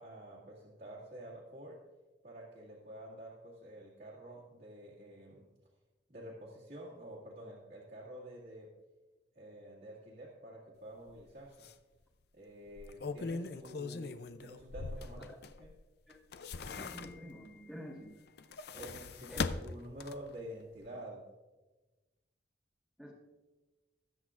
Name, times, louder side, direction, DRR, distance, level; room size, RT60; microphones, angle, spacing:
voice 1, 0.0-1.8 2.2-5.5 6.1-8.7 9.3-11.7 12.3-15.7 18.7-21.3, right 1 dB, 50° right, -6 dB, 2.0 m, -49 dB
sound 1, 11.1-11.2 11.6-11.7 12.7-15.7 16.1-17.5 18.3-20.4 20.8-20.9, left 4 dB, 60° left, 0.5 m, -40 dB
voice 2, 16.7-18.2 19.3-19.4 23.0-23.1, equal, ahead, -8 dB, 1.5 m, -48 dB
20.5 x 8.1 x 2.5 m, 1.2 s
head